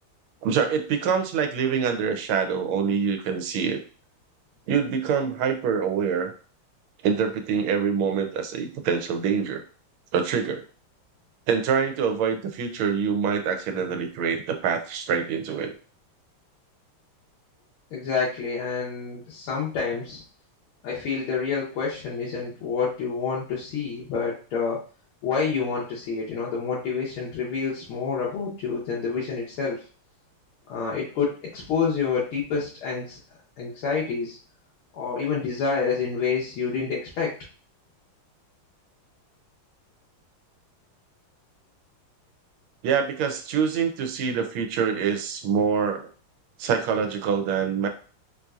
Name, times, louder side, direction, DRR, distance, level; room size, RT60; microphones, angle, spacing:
voice 1, 0.4-3.8 4.7-6.3 7.0-9.6 10.1-10.6 11.5-15.7 42.8-46.1 46.6-47.9, right 6 dB, 85° right, 5 dB, 1.5 m, -25 dB
voice 2, 17.9-20.2 20.8-24.8 25.2-29.8 30.7-33.2 33.6-34.4 34.9-37.3, left 5 dB, 85° left, -6 dB, 1.8 m, -28 dB
4.4 x 2.6 x 2.3 m, 0.38 s
omnidirectional pair, 2.3 m